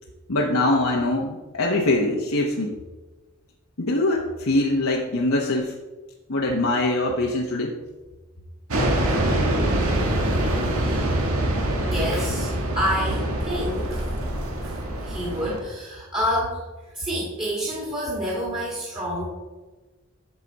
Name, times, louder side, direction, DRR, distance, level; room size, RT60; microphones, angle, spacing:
voice 1, 0.3-2.7 3.8-5.7 6.3-7.8, left 2 dB, 75° left, -1 dB, 0.9 m, -23 dB
sound 1, 8.7-15.6, right 1 dB, 85° right, 1.6 m, -24 dB
voice 2, 11.9-14.1 14.6-16.6 16.9-19.2, equal, 20° right, -5 dB, 1.8 m, -28 dB
13.5 x 4.9 x 4.0 m, 1.2 s
head